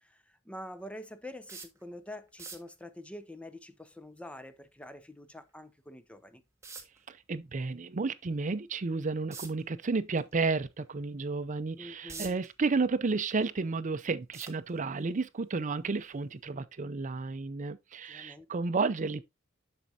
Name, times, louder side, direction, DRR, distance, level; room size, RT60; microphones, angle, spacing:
voice 1, 0.0-6.4 11.8-12.4 18.1-18.5, left 1 dB, 5° left, 0.6 m, -46 dB
sound 1, 1.5-1.8 2.3-2.7 5.5-5.6 6.6-7.0 9.3-9.6 10.2-10.3 10.8-10.9 11.7-12.5 13.0-13.7 14.3-15.0 15.9-16.1 16.5-16.6, right 4 dB, 15° right, 1.3 m, -44 dB
voice 2, 7.1-19.2, right 4 dB, 40° right, 0.5 m, -32 dB
7.5 x 6.3 x 2.7 m
head